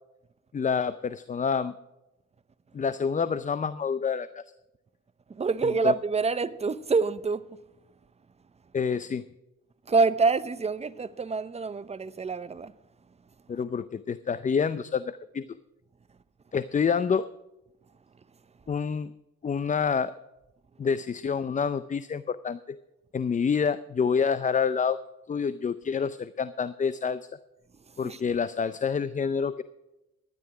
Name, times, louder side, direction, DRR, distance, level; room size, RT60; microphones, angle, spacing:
voice 1, 0.5-1.8 2.7-4.4 5.6-5.9 8.7-9.3 13.5-15.5 16.5-17.3 18.7-19.1 19.4-20.1 20.8-22.8 23.1-25.0 25.3-27.3 28.0-29.6, left 6 dB, 25° left, 0.5 m, -27 dB
voice 2, 5.3-7.6 9.9-12.7 28.0-28.2, right 4 dB, 20° right, 0.7 m, -26 dB
12.5 x 10.5 x 4.9 m
cardioid pair, 90°, 30 cm